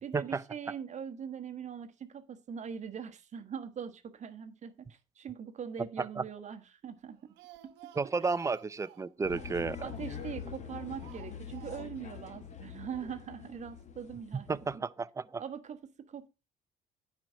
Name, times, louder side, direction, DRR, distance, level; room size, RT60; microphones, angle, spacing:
voice 1, 0.0-7.2 7.6-7.7 9.8-14.8 15.4-16.3, right 7 dB, 45° right, 1.3 m, -42 dB
Speech, 7.0-10.6 11.0-12.1 12.4-12.5 12.8-12.9, right 13 dB, 85° right, 1.0 m, -55 dB
voice 2, 8.0-9.8 14.5-15.4, right 4 dB, 20° right, 0.5 m, -32 dB
sound 1, 9.2-14.8, left 7 dB, 45° left, 1.3 m, -44 dB
9.6 x 4.6 x 6.2 m
cardioid pair, 110°, 17 cm